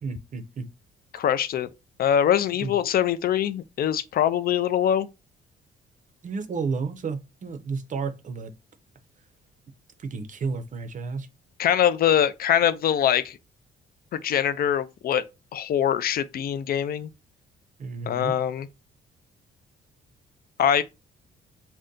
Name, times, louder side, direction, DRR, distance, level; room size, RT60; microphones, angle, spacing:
voice 1, 0.0-0.7 2.6-2.8 6.2-8.5 10.0-11.3 17.8-18.4, right 4 dB, 40° right, 0.6 m, -32 dB
voice 2, 1.1-1.7 2.0-5.1 11.6-13.4 14.1-15.2 15.5-17.1 18.1-18.7 20.6-20.8, left 9 dB, 50° left, 0.4 m, -23 dB
2.6 x 2.2 x 3.6 m
cardioid pair, 90°, 20 cm